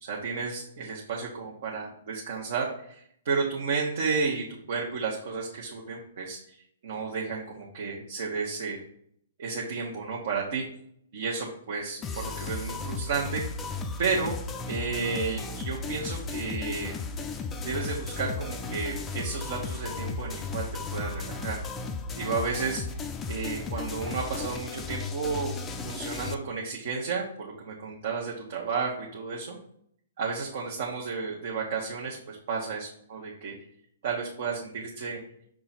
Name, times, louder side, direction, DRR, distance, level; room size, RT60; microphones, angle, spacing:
voice 1, 0.0-6.6 6.8-8.8 9.4-10.6 11.1-13.4 14.0-14.3 14.7-16.9 17.6-21.6 22.2-22.8 23.3-29.6 30.2-33.5 34.0-35.2, right 5 dB, 55° right, -3 dB, 1.1 m, -32 dB
sound 1, 12.0-26.3, left 4 dB, 20° left, 0.5 m, -35 dB
6.0 x 3.7 x 4.2 m, 0.68 s
figure-of-eight pair, 120°, 0 cm